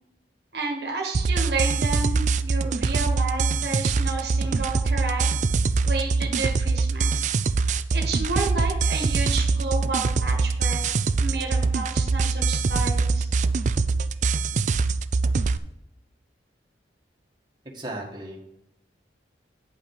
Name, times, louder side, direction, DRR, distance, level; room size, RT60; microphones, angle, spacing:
voice 1, 0.5-5.3 5.8-7.3 7.9-10.9 11.2-13.3, right 3 dB, 65° right, 2 dB, 1.4 m, -31 dB
sound 1, 1.1-15.6, right 4 dB, 45° right, 0.3 m, -23 dB
voice 2, 17.7-18.4, right 1 dB, 25° right, -2 dB, 1.6 m, -35 dB
8.8 x 5.7 x 4.8 m, 0.84 s
head